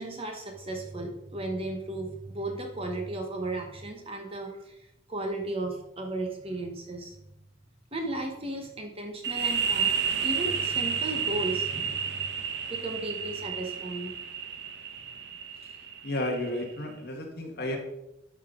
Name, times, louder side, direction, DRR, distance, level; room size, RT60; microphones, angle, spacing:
voice 1, 0.0-4.8 5.1-7.1 7.9-9.9 10.2-12.3 12.7-14.1, right 2 dB, 25° right, 3 dB, 1.0 m, -35 dB
sound 1, 9.2-16.7, right 6 dB, 55° right, 0.9 m, -31 dB
voice 2, 16.0-17.8, left 1 dB, 50° left, 2 dB, 1.5 m, -32 dB
11.0 x 5.5 x 3.7 m, 0.88 s
head